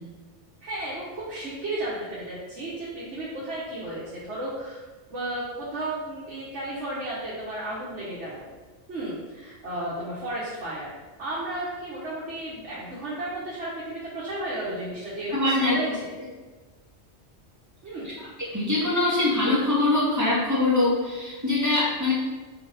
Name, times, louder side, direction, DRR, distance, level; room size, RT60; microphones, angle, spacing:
voice 1, 0.6-4.8 5.1-8.4 8.9-15.9 17.8-18.1 18.4-18.5, right 1 dB, 80° right, -8 dB, 1.7 m, -33 dB
voice 2, 15.3-15.8 18.0-18.3 18.5-22.1, left 2 dB, 15° right, -8 dB, 2.3 m, -23 dB
6.5 x 4.6 x 4.2 m, 1.3 s
omnidirectional pair, 1.2 m